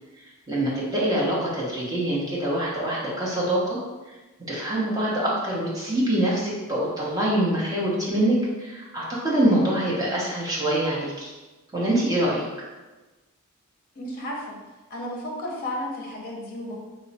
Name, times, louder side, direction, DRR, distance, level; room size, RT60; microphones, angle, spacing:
voice 1, 0.5-3.8 4.5-11.3 11.7-12.4, right 1 dB, 15° right, -6 dB, 0.8 m, -24 dB
voice 2, 14.0-14.5 14.9-16.8, left 1 dB, 40° left, -2 dB, 0.7 m, -33 dB
3.0 x 2.0 x 4.0 m, 1.2 s
head